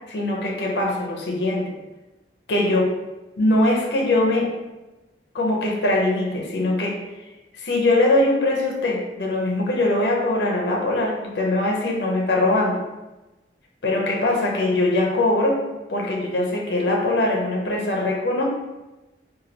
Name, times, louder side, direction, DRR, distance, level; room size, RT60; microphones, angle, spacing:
voice 1, 0.1-1.7 2.5-2.9 3.4-4.5 5.3-7.0 7.5-12.8 13.8-15.6 15.9-18.4, left 2 dB, 65° left, -1 dB, 0.5 m, -21 dB
3.1 x 2.3 x 2.6 m, 1.1 s
head